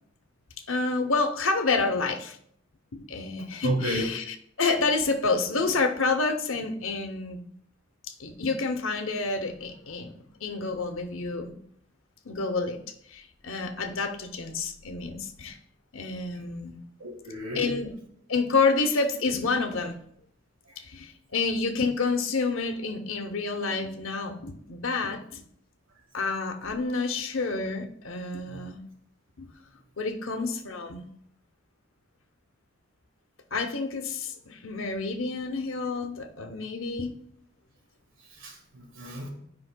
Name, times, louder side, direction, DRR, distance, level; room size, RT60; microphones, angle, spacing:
voice 1, 0.7-2.4 2.9-7.4 8.2-10.1 10.4-11.5 12.2-12.8 13.1-15.6 15.9-16.8 17.5-17.9 18.3-20.0 20.8-25.4 26.1-28.8 29.4-29.5 30.0-31.0 33.5-37.1, left 4 dB, 90° left, 0.8 m, -29 dB
voice 2, 3.6-4.0 17.0-17.8 28.5-28.6 38.4-39.3, right 1 dB, 80° right, 1.6 m, -32 dB
10.5 x 5.2 x 2.2 m
head